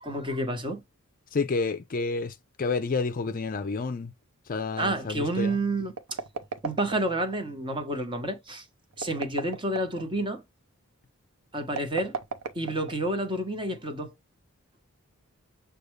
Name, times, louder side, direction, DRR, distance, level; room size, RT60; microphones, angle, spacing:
voice 1, 0.0-0.8 4.8-6.2 6.6-8.7 9.0-10.4 11.5-12.1 12.5-14.1, right 1 dB, 20° right, 1.0 m, -29 dB
voice 2, 1.3-4.1 4.5-5.6, left 4 dB, 40° left, 0.4 m, -29 dB
sound 1, 6.0-7.4 8.9-10.1 11.7-13.2, right 5 dB, 85° right, 0.9 m, -35 dB
6.6 x 2.3 x 3.2 m
head